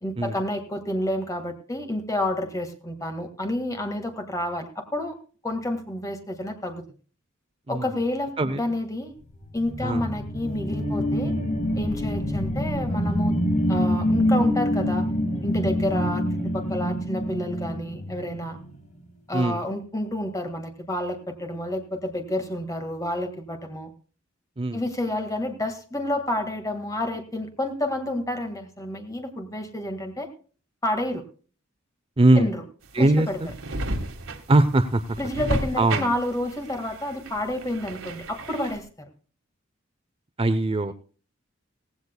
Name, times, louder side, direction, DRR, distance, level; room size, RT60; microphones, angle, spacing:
voice 1, 0.0-5.2 5.4-6.8 7.7-9.1 9.5-11.4 11.7-13.4 13.7-15.1 15.4-16.2 16.5-18.6 19.3-23.9 24.7-30.3 30.8-31.2 32.4-32.6 33.0-33.4 35.2-39.1, left 1 dB, 15° left, 6 dB, 1.9 m, -29 dB
sound 1, 9.4-18.7, equal, 35° left, 2.0 m, -26 dB
voice 2, 32.2-32.5 32.9-33.5 34.5-35.0 35.8-36.1 40.4-40.9, right 2 dB, 30° right, 10 dB, 0.6 m, -21 dB
sound 2, 32.8-38.8, right 1 dB, 85° right, 1.8 m, -32 dB
16.5 x 16.0 x 2.3 m, 0.39 s
head